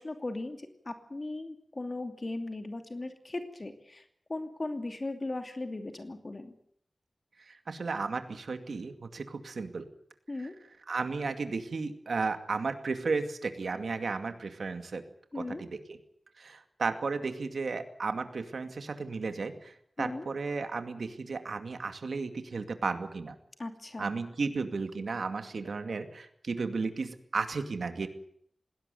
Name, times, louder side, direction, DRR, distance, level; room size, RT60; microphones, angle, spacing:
voice 1, 0.0-4.0 4.3-6.5 10.3-10.6 15.3-15.6 20.0-20.3 23.6-24.1, left 2 dB, 40° left, 7 dB, 2.6 m, -38 dB
voice 2, 7.4-9.8 10.4-10.5 10.9-15.0 15.3-16.0 16.4-23.4 24.0-28.1, right 4 dB, 85° right, 8 dB, 2.3 m, -34 dB
20.0 x 17.5 x 9.4 m, 0.66 s
wide cardioid pair, 80°, 0 cm